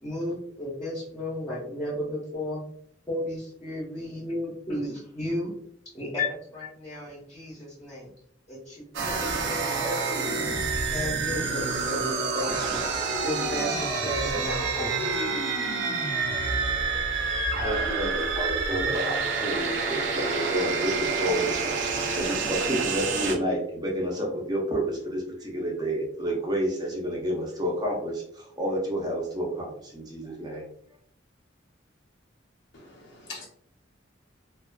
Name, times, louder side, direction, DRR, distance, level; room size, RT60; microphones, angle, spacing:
voice 1, 0.0-2.6 3.1-5.5 5.9-8.1 8.5-10.5 10.9-12.8 13.2-15.2, left 1 dB, 15° left, -7 dB, 0.7 m, -34 dB
sound 1, 8.9-23.3, right 4 dB, 65° right, 0.5 m, -28 dB
voice 2, 17.6-21.7 22.1-30.7, equal, 20° right, -2 dB, 0.6 m, -30 dB
voice 3, 32.7-33.5, left 3 dB, 70° left, -2 dB, 0.6 m, -43 dB
2.3 x 2.3 x 2.2 m, 0.65 s
head